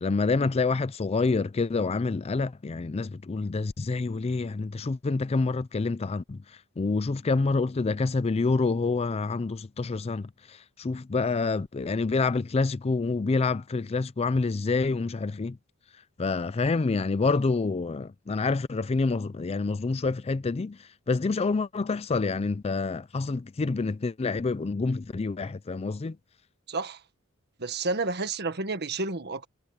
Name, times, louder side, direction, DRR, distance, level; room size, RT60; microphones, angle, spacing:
voice 1, 0.0-6.4 6.8-10.3 10.8-15.6 16.2-20.8 21.1-26.2, left 3 dB, 30° left, 0.4 m, -27 dB
voice 2, 26.7-27.0 27.6-29.5, right 3 dB, 50° right, 1.6 m, -30 dB
head